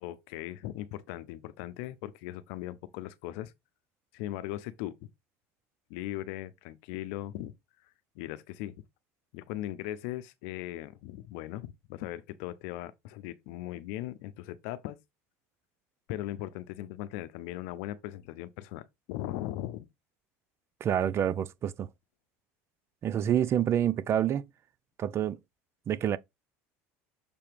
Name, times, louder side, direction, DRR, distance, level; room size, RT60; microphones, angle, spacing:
voice 1, 0.0-3.5 4.1-5.1 5.9-7.5 8.1-8.8 9.3-15.0 16.1-19.9, left 14 dB, 75° left, 0.7 m, -39 dB
voice 2, 20.8-21.9 23.0-24.4 25.0-25.4 25.9-26.2, right 10 dB, 40° right, 0.5 m, -27 dB
6.9 x 2.8 x 5.1 m
supercardioid pair, 105°, 7 cm